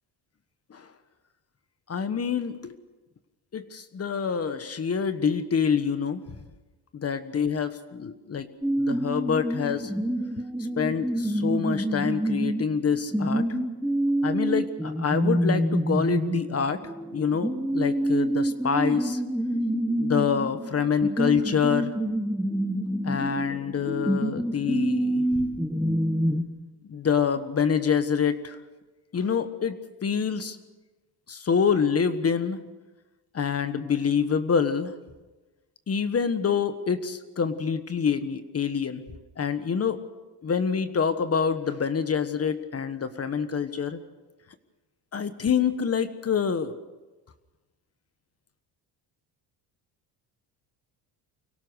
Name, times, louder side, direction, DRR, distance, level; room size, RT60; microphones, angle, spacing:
voice 1, 1.9-2.8 3.5-6.2 6.9-8.5 8.8-9.9 10.8-13.5 14.2-16.8 17.1-19.2 20.0-21.9 23.0-25.3 26.9-28.6 29.1-29.7 30.0-30.6 31.3-32.6 33.3-34.9 35.9-39.0 39.4-40.0 40.4-44.0 45.1-46.7, left 6 dB, 35° left, 11 dB, 1.4 m, -26 dB
sound 1, 8.6-26.4, right 1 dB, ahead, 1.7 m, -27 dB
24.5 x 17.5 x 6.4 m, 1.2 s
cardioid pair, 100°, 42 cm